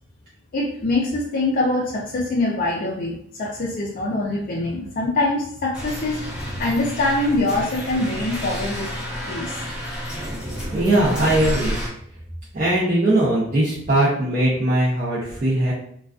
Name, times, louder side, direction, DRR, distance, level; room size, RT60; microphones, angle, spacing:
voice 1, 0.5-8.9 9.3-9.6, left 2 dB, 45° left, -3 dB, 0.4 m, -24 dB
sound 1, 5.7-11.9, equal, 5° right, 0.8 m, -30 dB
voice 2, 10.7-11.8 12.5-15.7, right 1 dB, 35° right, -9 dB, 0.6 m, -20 dB
2.3 x 2.3 x 2.3 m, 0.65 s
head